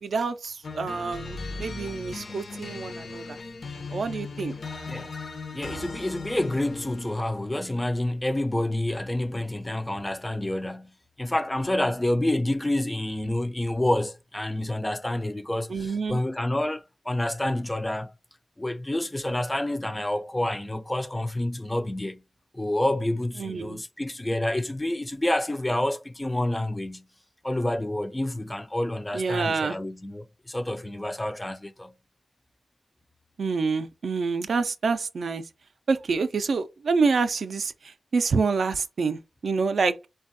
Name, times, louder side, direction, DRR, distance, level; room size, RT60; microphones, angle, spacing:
voice 1, 0.0-3.4 3.9-4.5 15.7-16.2 23.4-23.8 29.1-29.8 33.4-35.4 35.9-40.1, right 4 dB, 70° right, 0.3 m, -27 dB
sound 1, 0.6-7.3, left 3 dB, 70° left, 0.5 m, -38 dB
voice 2, 5.5-10.9 11.2-18.1 18.6-22.2 22.5-27.1 27.4-31.9, left 1 dB, 15° left, 0.3 m, -28 dB
3.3 x 2.3 x 2.5 m
cardioid pair, 75°, 0 cm